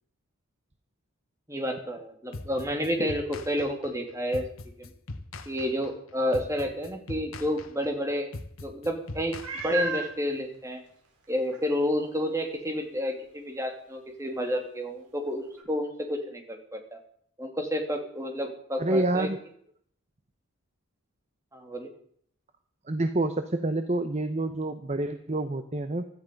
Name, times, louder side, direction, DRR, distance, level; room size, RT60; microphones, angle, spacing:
voice 1, 1.5-4.4 4.8-4.9 5.5-8.3 8.6-10.8 11.3-17.0 17.4-19.3 21.5-21.9, equal, 15° right, 4 dB, 2.7 m, -30 dB
sound 1, 2.3-10.1, left 2 dB, 65° left, 1.5 m, -41 dB
Meow, 9.4-10.1 10.9-11.0 11.5-11.6 15.6-15.7, right 4 dB, 90° right, 5.0 m, -32 dB
voice 2, 18.8-19.4 22.9-26.1, right 2 dB, 30° right, 9 dB, 0.9 m, -28 dB
16.5 x 13.5 x 5.3 m, 0.64 s
head